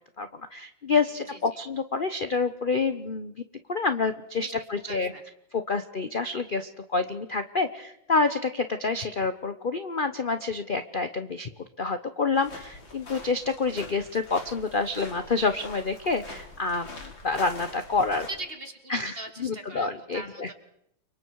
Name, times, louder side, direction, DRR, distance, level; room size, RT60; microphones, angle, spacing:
voice 1, 0.2-3.3 3.7-5.1 5.5-11.5 11.8-18.3 18.9-20.5, left 4 dB, 40° left, 10 dB, 0.8 m, -28 dB
voice 2, 4.8-5.2 9.0-9.1 18.3-20.5, right 2 dB, 30° right, 5 dB, 2.8 m, -40 dB
sound 1, 12.3-18.3, left 2 dB, 75° left, 4.4 m, -44 dB
30.0 x 24.5 x 4.8 m, 0.77 s
omnidirectional pair, 2.1 m